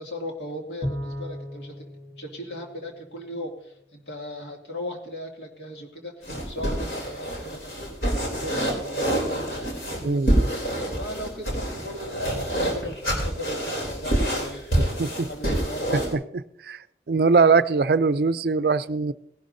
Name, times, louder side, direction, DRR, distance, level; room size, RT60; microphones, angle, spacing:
voice 1, 0.0-7.9 8.2-10.2 10.9-16.1, left 1 dB, 80° left, 1 dB, 2.4 m, -38 dB
Bowed string instrument, 0.8-3.4, equal, 20° left, 1.2 m, -36 dB
sound 1, 6.2-16.1, right 1 dB, 60° left, 3.3 m, -27 dB
voice 2, 10.0-10.5 15.0-15.3 16.3-16.8 17.1-19.1, right 4 dB, 60° right, 14 dB, 0.4 m, -21 dB
18.5 x 11.5 x 2.7 m, 0.70 s
head